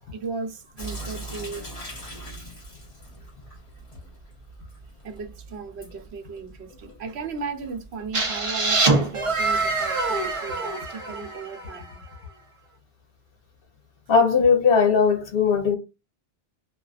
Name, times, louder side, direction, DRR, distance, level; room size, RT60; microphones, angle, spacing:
voice 1, 0.0-1.7 5.0-12.0, right 4 dB, 90° right, 0.9 m, -36 dB
Sink (filling or washing) / Drip, 0.8-9.7, right 1 dB, 35° left, 1.0 m, -42 dB
sound 1, 8.1-11.9, right 3 dB, 35° right, 0.6 m, -24 dB
voice 2, 14.1-15.8, left 5 dB, 65° left, 0.9 m, -18 dB
2.4 x 2.4 x 2.3 m
omnidirectional pair, 1.1 m